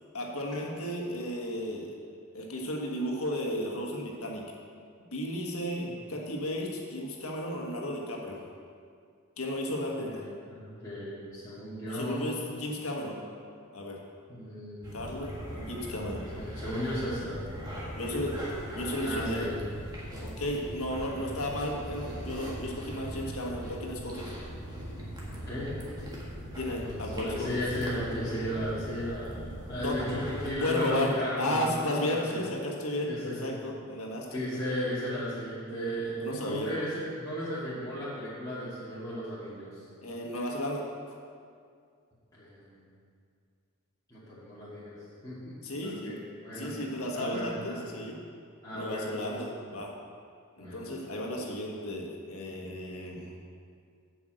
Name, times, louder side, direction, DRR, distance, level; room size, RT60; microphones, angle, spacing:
voice 1, 0.1-1.9 2.3-4.5 5.1-8.4 9.4-10.2 11.9-13.2 13.7-14.0 14.9-16.3 17.9-18.3 18.7-19.5 20.2-24.3 26.6-27.5 29.8-30.0 30.6-33.1 33.4-34.4 36.2-36.7 40.0-40.8 45.6-46.2 46.5-48.2 48.7-49.9 50.6-53.3, left 1 dB, 85° left, -1 dB, 1.6 m, -34 dB
voice 2, 10.0-12.4 14.3-14.9 16.3-17.4 19.0-19.5 21.2-21.3 25.3-25.7 26.8-32.4 33.1-33.5 34.3-39.8 42.3-42.8 44.1-45.0 45.2-45.6 45.8-46.1 46.4-46.7 47.1-47.7 48.6-49.3 50.6-50.9, equal, 15° left, -12 dB, 2.1 m, -35 dB
sound 1, 14.8-30.5, equal, 20° right, 1.7 m, -40 dB
7.9 x 5.9 x 7.7 m, 2.2 s
head